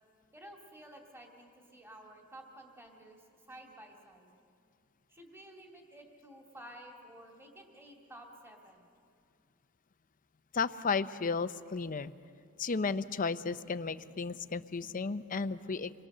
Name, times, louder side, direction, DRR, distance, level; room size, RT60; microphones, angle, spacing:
voice 1, 0.3-4.3 5.1-8.8, right 1 dB, 10° right, 0 dB, 2.4 m, -52 dB
voice 2, 10.5-12.1 12.6-15.9, left 4 dB, 40° left, 12 dB, 0.6 m, -33 dB
28.0 x 21.5 x 6.7 m, 2.3 s
head